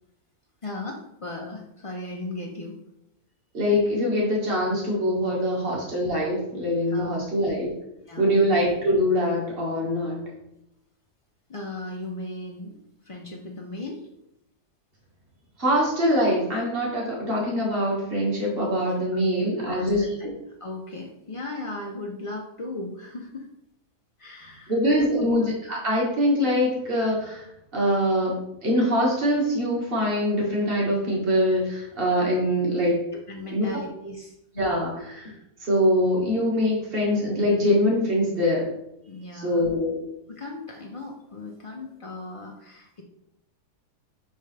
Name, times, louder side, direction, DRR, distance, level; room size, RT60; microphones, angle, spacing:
voice 1, 0.6-2.8 5.5-5.6 6.9-7.2 8.1-8.3 11.5-12.8 13.0-14.0 19.7-23.5 24.2-25.1 25.4-25.5 33.3-34.3 39.1-39.6 40.3-43.0, left 2 dB, 55° left, -1 dB, 0.3 m, -37 dB
voice 2, 3.5-7.7 8.2-10.2 15.6-20.3 24.7-27.5 27.7-33.0 33.5-33.7 34.6-35.3 35.6-38.7 39.3-40.0, equal, 40° right, -3 dB, 1.9 m, -23 dB
5.5 x 5.4 x 3.3 m, 0.81 s
omnidirectional pair, 1.6 m